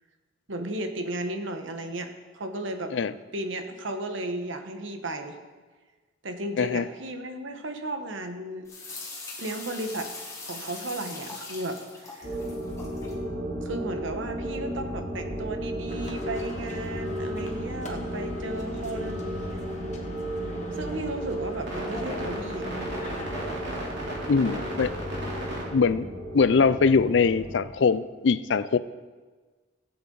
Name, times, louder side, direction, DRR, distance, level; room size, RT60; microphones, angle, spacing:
voice 1, 0.5-2.9 3.3-5.4 6.2-8.7 9.4-10.1 10.4-12.4 13.6-19.2 20.7-22.7, right 1 dB, 75° right, 6 dB, 1.2 m, -34 dB
sound 1, 8.7-13.1, left 3 dB, 15° left, 1.7 m, -41 dB
sound 2, 12.2-27.6, equal, 60° right, 3.3 m, -33 dB
sound 3, 15.9-23.6, left 1 dB, 35° left, 1.5 m, -43 dB
voice 2, 24.3-24.9 25.7-26.1 26.3-28.8, left 5 dB, 65° left, 15 dB, 0.4 m, -22 dB
16.5 x 8.0 x 4.0 m, 1.4 s
head